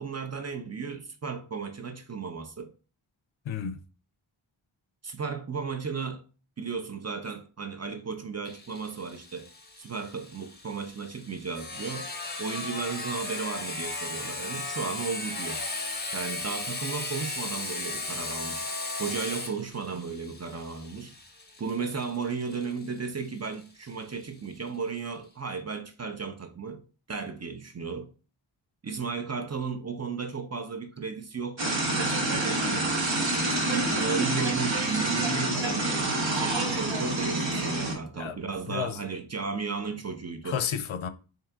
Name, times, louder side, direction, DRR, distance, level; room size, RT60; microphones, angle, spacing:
voice 1, 0.0-2.7 5.0-6.2 6.6-9.5 9.8-12.1 12.4-15.6 16.1-21.1 21.6-26.8 27.1-28.1 28.8-32.9 33.7-36.1 36.3-40.6, right 5 dB, 35° right, 0.5 m, -34 dB
voice 2, 3.5-3.8 38.1-38.4 38.7-39.0 40.4-41.1, left 8 dB, 75° left, 0.5 m, -31 dB
Sawing, 8.5-23.9, left 3 dB, 20° left, 0.6 m, -36 dB
sound 1, 31.6-37.9, right 2 dB, 65° right, 1.0 m, -27 dB
3.7 x 2.8 x 3.4 m
wide cardioid pair, 75°, 48 cm